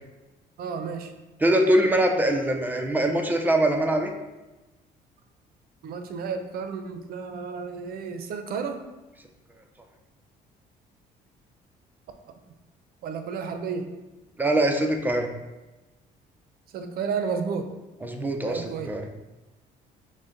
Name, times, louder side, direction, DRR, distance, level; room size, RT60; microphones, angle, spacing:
voice 1, 0.6-1.1 5.8-8.8 13.0-13.9 16.7-17.7 18.5-18.9, right 5 dB, 65° right, 7 dB, 0.6 m, -32 dB
voice 2, 1.4-4.1 14.4-15.3 18.0-19.1, right 1 dB, 10° right, 4 dB, 0.5 m, -23 dB
6.1 x 2.2 x 4.0 m, 1.1 s
cardioid pair, 110°, 17 cm